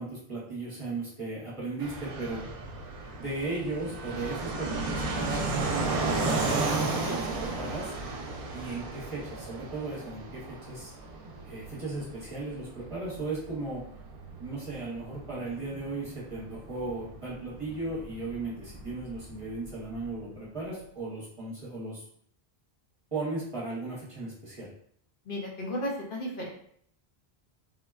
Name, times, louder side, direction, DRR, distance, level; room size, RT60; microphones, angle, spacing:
voice 1, 0.0-2.4 3.2-5.9 6.2-7.9 8.5-10.9 11.4-13.8 14.4-22.0 23.1-24.7, right 3 dB, 35° right, -7 dB, 0.8 m, -36 dB
Fixed-wing aircraft airplane, 1.8-20.2, right 3 dB, 65° right, 0.7 m, -35 dB
voice 2, 25.3-26.5, equal, 60° left, -1 dB, 0.8 m, -34 dB
3.7 x 2.1 x 2.3 m, 0.63 s
omnidirectional pair, 1.1 m